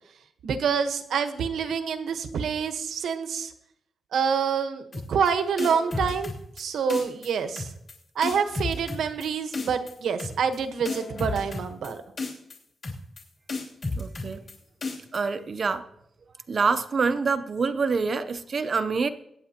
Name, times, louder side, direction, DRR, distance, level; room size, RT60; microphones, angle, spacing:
voice 1, 0.4-3.5 4.1-4.8 5.1-6.3 6.6-7.7 8.1-12.0, right 6 dB, 85° right, 1.1 m, -27 dB
sound 1, 4.9-5.3 5.6-6.6 6.9-7.3 7.5-7.9 8.2-9.3 9.5-9.9 10.2-10.6 10.8-11.9 12.2-12.6 12.8-13.2 13.5-14.5 14.8-15.2, left 3 dB, 40° left, 2.9 m, -32 dB
voice 2, 14.0-14.5 15.1-15.9 16.5-19.1, right 4 dB, 35° right, 0.6 m, -26 dB
22.0 x 9.5 x 2.9 m
wide cardioid pair, 180°, 0 cm